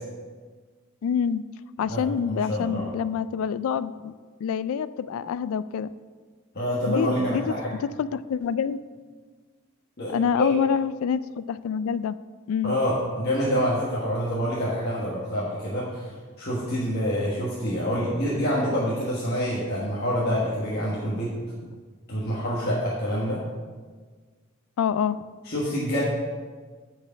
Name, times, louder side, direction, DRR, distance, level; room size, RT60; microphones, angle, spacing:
voice 1, 1.0-1.4 1.8-4.1 4.4-5.9 6.9-7.4 7.8-8.8 10.1-12.2 12.5-12.7 24.8-25.2, left 7 dB, 85° left, 16 dB, 0.3 m, -26 dB
voice 2, 1.9-2.8 6.5-7.7 10.0-10.5 12.6-16.1 16.4-21.3 22.1-23.4 25.4-26.0, equal, 50° left, -7 dB, 1.4 m, -27 dB
8.9 x 4.8 x 5.7 m, 1.5 s
head